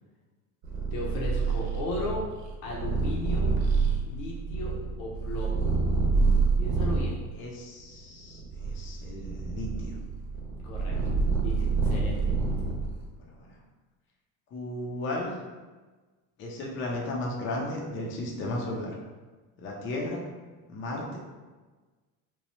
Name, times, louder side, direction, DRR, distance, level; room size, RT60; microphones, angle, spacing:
Purr, 0.6-7.2 7.8-13.1, right 4 dB, 45° right, 0.8 m, -27 dB
voice 1, 0.9-2.2 2.6-3.5 4.1-4.7 5.0-5.6 6.6-7.2 10.6-11.1 11.4-12.3, left 2 dB, 80° left, -3 dB, 1.0 m, -36 dB
voice 2, 7.3-10.0 13.2-13.6 14.5-15.4 16.4-18.9 19.6-20.2 20.7-21.2, left 1 dB, 30° left, -2 dB, 0.6 m, -35 dB
3.0 x 2.2 x 4.2 m, 1.3 s
cardioid pair, 135°, 41 cm